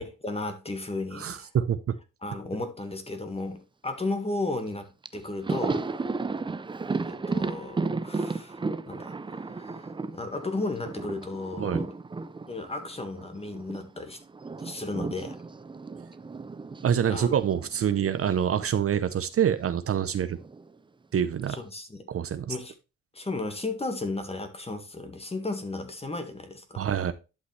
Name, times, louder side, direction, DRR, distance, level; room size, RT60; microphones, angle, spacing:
voice 1, 0.0-1.5 2.2-5.9 7.0-8.6 8.9-11.9 12.5-14.2 14.6-15.4 17.1-17.3 21.5-22.0 22.5-22.7 23.1-26.9, left 2 dB, 20° left, 1.8 m, -34 dB
voice 2, 1.1-2.0 11.6-11.8 16.8-20.4 21.1-21.6 22.1-22.5 26.8-27.1, right 9 dB, 50° right, 0.8 m, -26 dB
Thunder, 4.7-4.8 5.0-13.9 14.1-18.4 18.7-18.9 20.0-20.7, right 3 dB, 15° right, 0.5 m, -34 dB
11.0 x 5.7 x 3.2 m
cardioid pair, 90°, 30 cm